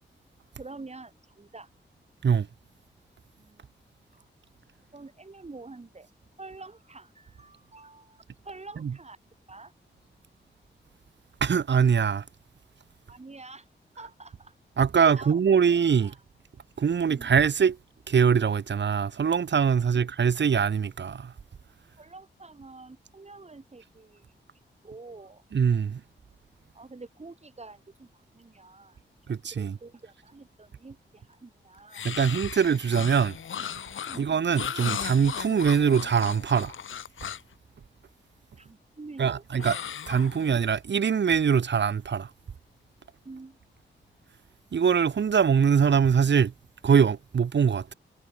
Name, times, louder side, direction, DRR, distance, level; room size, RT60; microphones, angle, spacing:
voice 1, 0.6-1.7 3.4-3.7 4.1-4.3 4.9-6.1 6.4-9.2 9.5-9.7 13.1-13.7 14.0-14.5 15.1-15.4 16.0-16.2 17.1-17.3 19.9-20.1 22.0-24.3 24.8-25.4 26.7-29.0 29.5-32.1 34.0-34.3 38.6-39.6 43.2-43.6, right 3 dB, 35° right, 3.5 m, -47 dB
voice 2, 11.4-12.2 14.8-16.1 16.8-17.8 18.1-21.3 25.5-26.0 29.3-29.7 32.0-33.4 34.1-36.7 39.2-39.8 40.1-42.3 44.7-46.5 46.8-47.9, right 7 dB, 65° right, 1.5 m, -23 dB
sound 1, 31.9-37.5 39.6-40.8, left 8 dB, 85° left, 1.9 m, -36 dB
cardioid pair, 65°, 20 cm